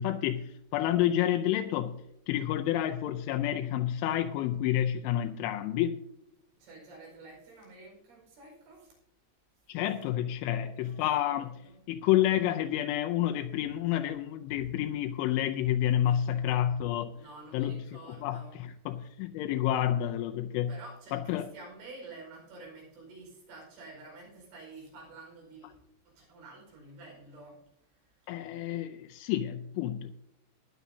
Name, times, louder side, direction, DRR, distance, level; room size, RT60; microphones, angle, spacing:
voice 1, 0.0-2.0 2.3-6.0 9.7-11.6 11.9-17.1 17.5-17.8 18.2-20.7 21.1-21.5 28.3-30.1, left 12 dB, 85° left, 3.1 m, -29 dB
voice 2, 6.6-9.0 9.9-10.1 10.4-11.8 16.2-16.5 17.1-18.6 20.7-25.8 26.1-27.6 27.9-28.3, right 2 dB, 80° right, 7.4 m, -50 dB
18.5 x 10.5 x 2.7 m
omnidirectional pair, 5.4 m